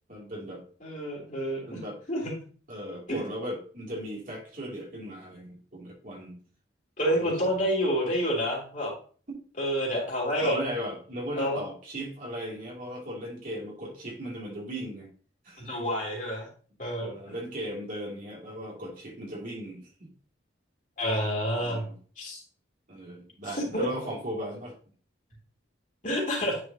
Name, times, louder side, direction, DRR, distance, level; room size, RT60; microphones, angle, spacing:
voice 1, 0.1-0.6 1.7-2.0 2.7-6.4 7.1-7.6 9.3-9.4 10.4-15.1 15.4-15.7 17.0-20.1 21.6-22.0 22.9-24.7, equal, 45° right, -3 dB, 2.6 m, -37 dB
voice 2, 0.8-1.8 2.1-2.3 3.1-3.2 7.0-8.9 9.6-10.6 11.4-11.6 15.6-16.5 16.8-17.3 21.0-21.8 22.2-22.4 23.5-23.9 26.0-26.6, equal, 45° left, -3 dB, 2.9 m, -28 dB
9.7 x 4.7 x 2.8 m, 0.41 s
head